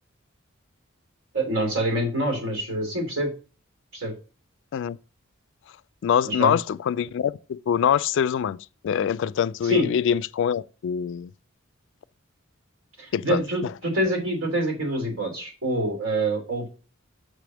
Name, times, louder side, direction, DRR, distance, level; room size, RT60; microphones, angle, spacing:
voice 1, 1.3-3.3 3.9-4.1 6.2-6.5 9.6-9.9 13.0-16.7, right 1 dB, 80° right, 3.0 m, -26 dB
voice 2, 6.0-8.6 8.8-11.3 13.1-13.7, left 8 dB, 60° left, 0.3 m, -24 dB
6.3 x 3.4 x 6.0 m
head